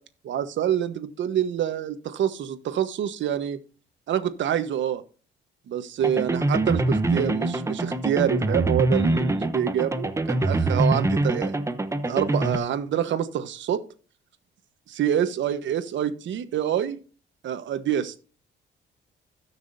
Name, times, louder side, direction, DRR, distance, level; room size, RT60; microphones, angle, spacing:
voice 1, 0.2-3.6 4.1-5.0 5.7-11.5 12.1-13.8 14.9-17.0 17.4-18.2, right 10 dB, 70° right, 10 dB, 1.2 m, -26 dB
sound 1, 6.0-12.6, right 2 dB, 15° right, 0.9 m, -24 dB
17.0 x 6.1 x 2.7 m, 0.38 s
cardioid pair, 90°, 20 cm